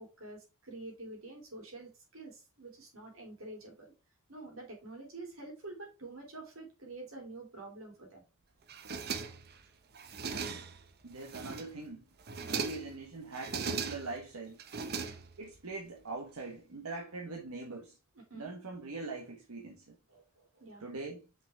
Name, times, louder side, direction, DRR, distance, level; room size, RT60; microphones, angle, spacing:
voice 1, 0.0-3.9 4.3-8.2 12.4-12.7 15.0-15.2 18.3-18.5 20.1-20.8, right 2 dB, 70° right, 3.0 m, -48 dB
sound 1, 8.7-9.6 9.9-10.8 11.2-11.8 12.2-13.0 13.3-14.2 14.6-15.6, right 5 dB, 45° right, 0.7 m, -38 dB
voice 2, 10.3-10.6 11.0-12.0 12.5-14.6 15.4-18.0 18.3-20.0 20.8-21.3, right 3 dB, 90° right, 1.2 m, -42 dB
5.9 x 5.1 x 3.4 m
head